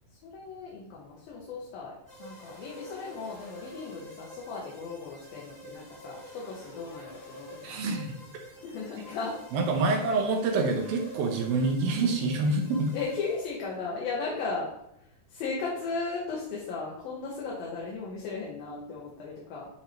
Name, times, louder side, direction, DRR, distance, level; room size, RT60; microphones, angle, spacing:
voice 1, 0.1-7.9 8.6-9.4 9.8-10.0 12.9-14.7 15.0-19.7, left 4 dB, 65° left, -5 dB, 3.0 m, -36 dB
sound 1, 2.1-13.8, equal, 30° left, 1.2 m, -48 dB
voice 2, 7.6-8.2 9.5-12.9, right 3 dB, 75° right, 3 dB, 2.6 m, -26 dB
9.4 x 3.5 x 4.4 m, 0.80 s
omnidirectional pair, 4.7 m